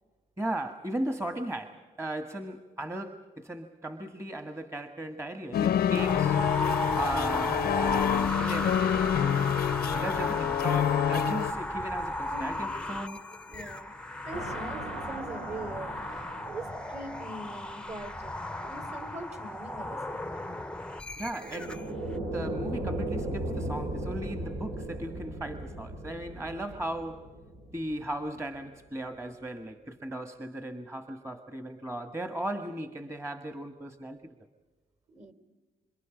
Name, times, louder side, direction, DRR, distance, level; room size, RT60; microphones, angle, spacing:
voice 1, 0.4-6.4 6.9-9.5 9.9-13.3 21.2-21.9 22.2-27.4 27.7-34.3, right 1 dB, 15° right, 1.5 m, -37 dB
sound 1, 5.5-11.5, left 10 dB, 85° left, 0.7 m, -27 dB
sound 2, 6.0-21.9, left 1 dB, 5° left, 0.7 m, -35 dB
voice 2, 13.5-14.0 14.2-18.3 18.6-20.6 35.1-35.3, right 2 dB, 45° right, 3.5 m, -42 dB
sound 3, 14.3-18.2 21.2-28.4, right 1 dB, 85° right, 5.9 m, -37 dB
28.5 x 26.5 x 5.1 m
cardioid pair, 90°, 16 cm